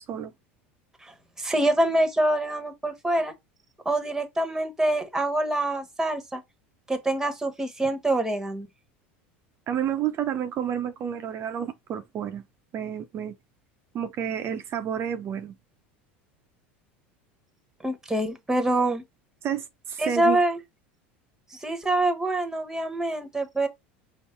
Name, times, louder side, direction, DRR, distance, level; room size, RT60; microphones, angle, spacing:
voice 1, 1.0-3.3 3.8-6.4 6.9-8.7 17.8-19.0 20.0-20.6 21.5-23.7, right 1 dB, 10° right, 1.1 m, -25 dB
voice 2, 9.7-12.4 12.7-13.4 13.9-15.5 19.4-20.4, right 9 dB, 45° right, 0.6 m, -30 dB
5.4 x 2.0 x 4.4 m
hypercardioid pair, 90°, 6 cm